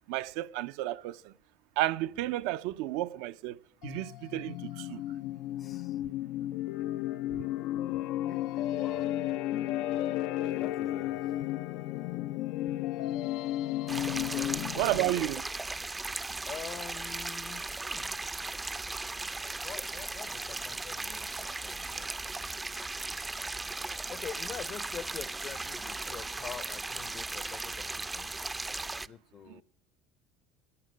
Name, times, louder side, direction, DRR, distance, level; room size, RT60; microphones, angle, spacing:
voice 1, 0.1-1.3 1.8-3.6 3.8-5.0 14.8-15.4 29.5-29.6, right 15 dB, 80° right, 0.5 m, -32 dB
sound 1, 3.8-15.2, left 13 dB, 70° left, 0.4 m, -33 dB
voice 2, 5.6-6.0 8.3-9.1 10.6-11.2 14.3-15.3 16.5-18.2 19.6-22.4 24.1-28.3 29.0-29.6, left 8 dB, 45° left, 0.7 m, -45 dB
sound 2, 13.9-29.1, right 3 dB, 15° right, 0.4 m, -37 dB
15.5 x 9.2 x 6.3 m
supercardioid pair, 100°, 0 cm